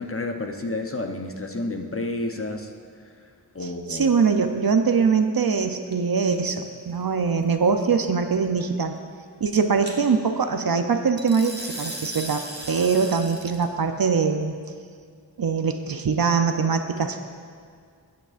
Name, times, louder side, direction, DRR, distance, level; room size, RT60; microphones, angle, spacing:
voice 1, 0.0-2.7 3.5-4.1, left 2 dB, 35° left, 3 dB, 0.8 m, -30 dB
voice 2, 3.6-8.9 9.4-14.5 15.4-17.2, right 5 dB, 60° right, 7 dB, 0.6 m, -23 dB
sound 1, 5.9-6.3 9.8-10.0 11.2-13.6, right 1 dB, 25° right, 1.4 m, -36 dB
12.5 x 8.7 x 2.5 m, 2.1 s
wide cardioid pair, 40°, 40 cm